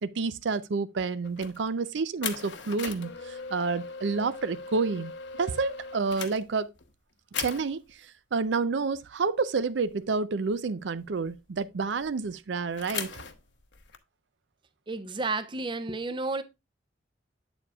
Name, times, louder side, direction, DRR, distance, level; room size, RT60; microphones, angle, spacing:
voice 1, 0.0-5.1 5.4-6.7 7.4-13.2, right 4 dB, 85° right, 0.5 m, -29 dB
sound 1, 1.2-1.7 2.2-6.9 7.3-7.9 9.9-10.2 10.5-10.6 11.0-12.1 12.8-14.0, left 6 dB, 85° left, 0.9 m, -39 dB
voice 2, 14.9-16.4, right 3 dB, 25° right, 0.6 m, -31 dB
8.3 x 7.1 x 2.3 m
head